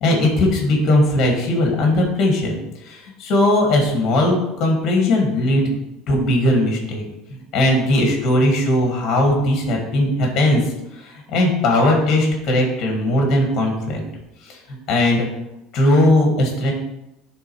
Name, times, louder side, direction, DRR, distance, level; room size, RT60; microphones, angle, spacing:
voice 1, 0.0-2.6 2.9-5.8 6.1-7.0 7.3-10.6 11.0-14.0 14.4-15.3 15.7-16.7, left 1 dB, 35° left, 1 dB, 1.6 m, -18 dB
9.2 x 3.7 x 4.6 m, 0.89 s
cardioid pair, 180°, 0 cm